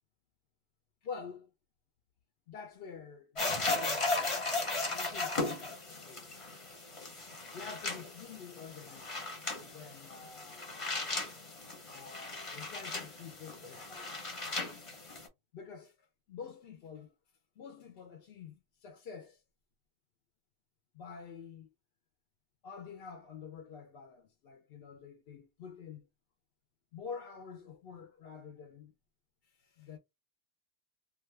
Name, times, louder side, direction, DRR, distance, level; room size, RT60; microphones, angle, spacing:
voice 1, 1.0-1.5 2.5-6.3 7.5-9.1 9.7-11.0 11.9-14.2 15.5-15.9 16.3-17.1 17.6-19.4 20.9-21.7 22.6-26.0 26.9-28.9 29.6-30.0, left 6 dB, 65° left, 0.7 m, -48 dB
sound 1, 3.4-15.3, left 3 dB, 30° left, 0.8 m, -37 dB
2.5 x 2.3 x 3.2 m
omnidirectional pair, 1.1 m